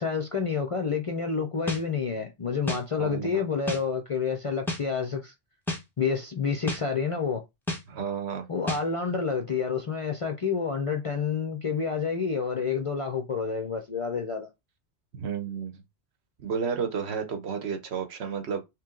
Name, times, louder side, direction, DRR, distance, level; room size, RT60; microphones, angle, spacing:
voice 1, 0.0-5.3 6.0-7.4 8.5-14.5, left 5 dB, 45° left, 0.4 m, -29 dB
sound 1, 1.7-1.8 2.7-2.8 3.7-3.8 4.7-4.8 5.7-5.8 6.7-6.8 7.7-7.8 8.7-8.8, left 2 dB, ahead, 0.7 m, -30 dB
voice 2, 3.0-3.4 7.9-8.5 15.1-15.8 16.4-18.6, right 6 dB, 70° right, 1.0 m, -31 dB
3.1 x 3.0 x 3.7 m
omnidirectional pair, 1.2 m